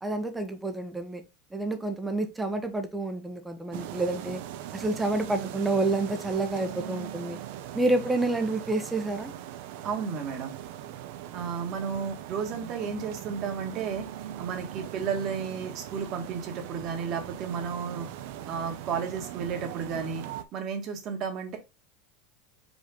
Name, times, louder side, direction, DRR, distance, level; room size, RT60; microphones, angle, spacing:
voice 1, 0.0-1.2 1.5-4.4 4.7-7.4 7.7-9.3, right 2 dB, 5° right, 0.9 m, -29 dB
sound 1, 3.7-20.4, right 11 dB, 60° right, 0.7 m, -40 dB
voice 2, 9.8-10.5 11.3-14.1 14.4-18.1 18.4-20.2 20.5-21.6, right 6 dB, 35° right, 1.6 m, -33 dB
5.2 x 5.0 x 3.8 m
supercardioid pair, 170°, 0 cm